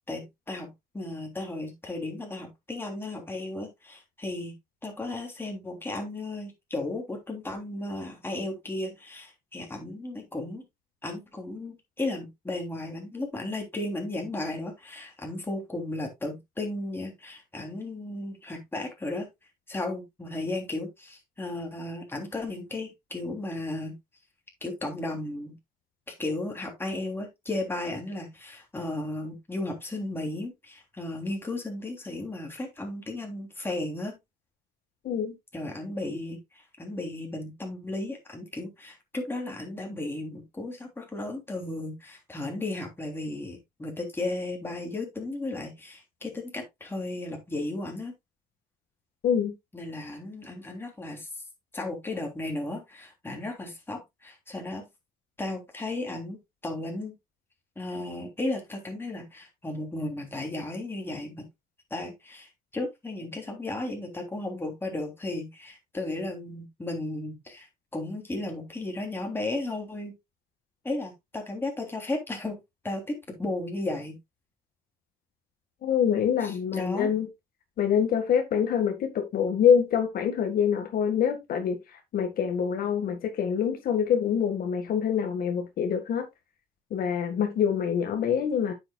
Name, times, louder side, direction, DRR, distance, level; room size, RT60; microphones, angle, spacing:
voice 1, 0.1-4.5 4.8-10.6 11.0-19.3 19.7-23.9 24.6-25.6 26.2-34.2 35.5-36.4 36.8-48.1 49.7-51.3 51.7-54.8 55.4-57.1 57.7-61.5 61.9-67.7 67.9-70.1 70.8-72.6 72.8-74.2 76.4-77.1, left 2 dB, 15° left, 3.3 m, -34 dB
voice 2, 35.0-35.3 49.2-49.5 75.8-77.3 77.8-81.8 82.1-86.3 86.9-88.7, left 8 dB, 60° left, 1.9 m, -25 dB
9.4 x 7.8 x 2.4 m
cardioid pair, 110°, 17 cm